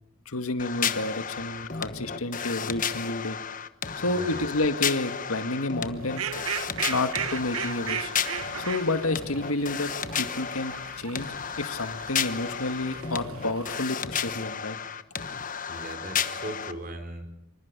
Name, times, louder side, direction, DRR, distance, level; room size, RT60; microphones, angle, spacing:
voice 1, 0.3-3.4 4.0-6.2 6.9-8.1 8.6-9.9 10.2-11.3 11.6-14.8, left 2 dB, 85° left, 8 dB, 2.2 m, -30 dB
sound 1, 0.6-16.7, left 7 dB, 40° left, 1.2 m, -33 dB
voice 2, 4.1-4.4 15.7-17.3, right 1 dB, 40° right, 6 dB, 4.9 m, -38 dB
Fowl, 6.0-13.8, right 8 dB, 90° right, 1.2 m, -37 dB
26.0 x 25.0 x 7.0 m, 0.83 s
head